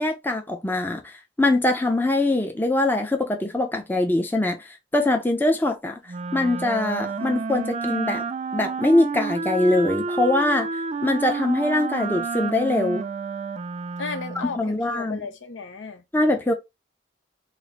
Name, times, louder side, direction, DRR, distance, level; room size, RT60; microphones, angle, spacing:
voice 1, 0.0-4.6 4.9-5.9 6.3-8.2 8.5-10.7 11.0-13.1 14.6-15.2 16.1-16.5, left 2 dB, 10° left, 0.6 m, -22 dB
Wind instrument woodwind instrument, 6.1-14.6, right 4 dB, 35° right, 0.4 m, -30 dB
voice 2, 14.0-16.0, left 4 dB, 85° left, 0.8 m, -34 dB
4.1 x 2.1 x 4.0 m
head